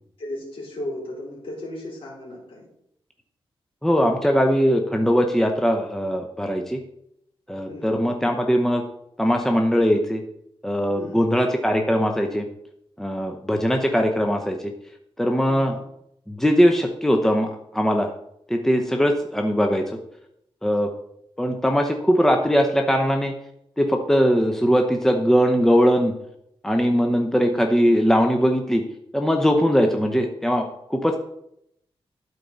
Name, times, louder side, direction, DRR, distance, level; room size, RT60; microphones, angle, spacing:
voice 1, 0.2-2.7 7.7-8.0 10.9-11.3 15.5-15.8, left 1 dB, 65° left, -5 dB, 3.6 m, -35 dB
voice 2, 3.8-6.8 7.5-8.8 9.2-10.2 10.6-12.5 13.0-14.7 15.2-15.7 16.3-18.1 18.5-20.0 20.6-20.9 21.4-23.4 23.8-26.1 26.6-28.8 29.1-31.2, equal, 5° left, 3 dB, 0.8 m, -20 dB
12.0 x 4.7 x 4.1 m, 0.75 s
wide cardioid pair, 90°, 10 cm